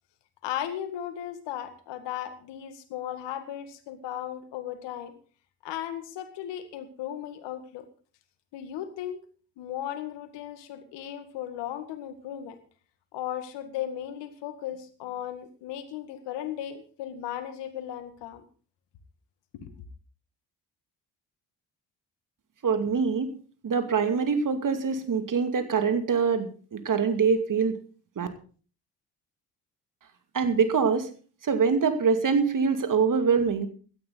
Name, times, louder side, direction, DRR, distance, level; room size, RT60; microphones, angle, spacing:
voice 1, 0.4-5.1 5.6-7.9 8.5-9.2 9.6-12.6 13.1-18.4 19.5-19.7, left 11 dB, 70° left, 10 dB, 2.0 m, -36 dB
voice 2, 22.6-23.3 23.6-27.7 28.2-28.3 30.3-31.1 31.4-33.7, right 5 dB, 45° right, 9 dB, 2.5 m, -24 dB
16.5 x 12.5 x 4.0 m, 0.39 s
hypercardioid pair, 50°, 44 cm